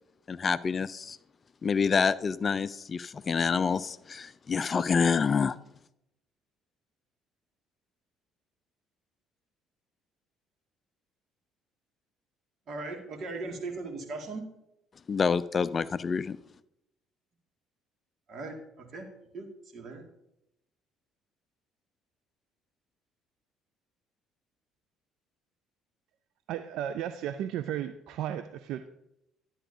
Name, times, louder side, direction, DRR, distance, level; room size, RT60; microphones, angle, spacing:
voice 1, 0.3-1.2 1.6-5.6 15.1-16.4, left 5 dB, 40° left, 17 dB, 0.4 m, -27 dB
voice 2, 12.7-14.4 18.3-19.1 19.3-19.5 19.7-20.0, right 3 dB, 50° right, 3 dB, 2.0 m, -38 dB
voice 3, 26.5-28.9, right 10 dB, 70° right, 11 dB, 0.4 m, -34 dB
11.5 x 8.7 x 2.7 m, 0.84 s
hypercardioid pair, 55°, 0 cm